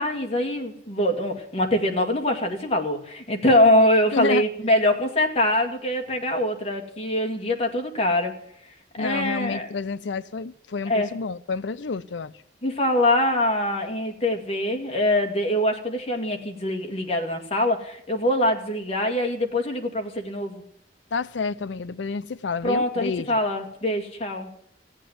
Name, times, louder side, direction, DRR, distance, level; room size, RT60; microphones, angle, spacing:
voice 1, 0.0-8.3 9.0-9.7 10.9-11.1 12.6-20.6 22.6-24.5, left 1 dB, 35° left, 2.1 m, -23 dB
voice 2, 4.1-4.5 9.0-12.3 21.1-23.4, left 4 dB, 85° left, 0.6 m, -29 dB
16.0 x 8.3 x 9.3 m
head